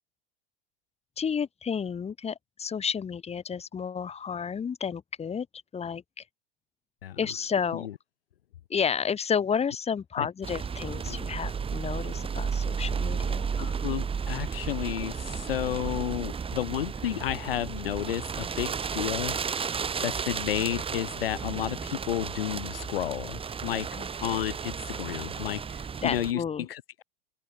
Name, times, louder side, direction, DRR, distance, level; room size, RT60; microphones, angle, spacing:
voice 1, 1.2-5.5 5.7-6.2 7.2-7.9 8.7-13.5 24.0-24.1 26.0-26.7, left 7 dB, 20° left, 5.2 m, -31 dB
sound 1, 10.4-26.3, right 6 dB, 20° right, 3.0 m, -33 dB
voice 2, 13.6-23.9 24.2-27.0, left 11 dB, 70° left, 3.1 m, -32 dB
open air
figure-of-eight pair, 95°, 30 cm